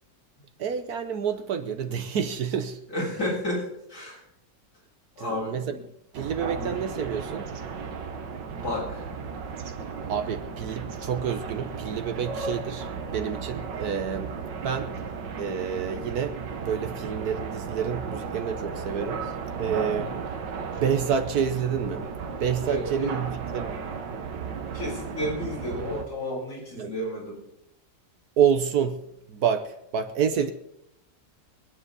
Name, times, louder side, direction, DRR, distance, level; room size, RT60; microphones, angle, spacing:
voice 1, 0.6-2.8 5.2-5.8 6.1-7.5 10.1-14.3 14.6-14.9 15.4-19.3 19.6-20.1 20.8-22.0 22.4-23.8 26.8-26.9 28.4-29.0 29.3-30.5, right 7 dB, 65° right, 8 dB, 1.3 m, -28 dB
voice 2, 2.9-4.2 5.2-5.8 6.6-6.8 8.5-9.0 19.9-20.2 22.7-23.1 24.7-27.4, left 1 dB, 65° left, -6 dB, 7.9 m, -32 dB
sound 1, 6.1-26.1, right 5 dB, 80° right, 1.9 m, -35 dB
24.5 x 9.8 x 4.1 m, 0.83 s
omnidirectional pair, 1.9 m